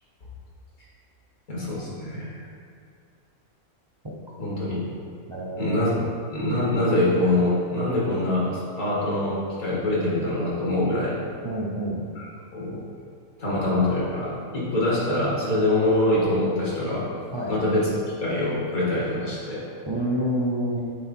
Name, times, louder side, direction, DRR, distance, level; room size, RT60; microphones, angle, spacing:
voice 1, 1.5-2.4 4.4-4.8 5.6-11.2 12.2-12.3 12.5-12.8 13.4-17.1 17.5-19.6, left 1 dB, 70° left, -6 dB, 2.2 m, -24 dB
voice 2, 5.3-6.0 11.4-12.0 17.3-17.6 19.9-20.8, equal, 35° right, -5 dB, 0.4 m, -28 dB
7.8 x 3.7 x 4.3 m, 2.2 s
omnidirectional pair, 1.5 m